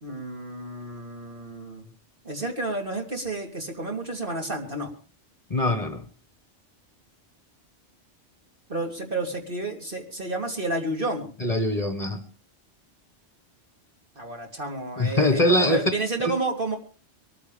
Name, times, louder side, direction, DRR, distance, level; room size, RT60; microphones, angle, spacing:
voice 1, 0.0-1.9 2.2-4.9 8.7-11.3 14.2-16.8, right 2 dB, 45° right, 2 dB, 3.4 m, -31 dB
voice 2, 5.5-6.0 11.4-12.2 15.0-15.8 16.2-16.4, left 1 dB, 30° left, 8 dB, 1.6 m, -23 dB
23.0 x 14.5 x 3.5 m, 0.36 s
omnidirectional pair, 1.3 m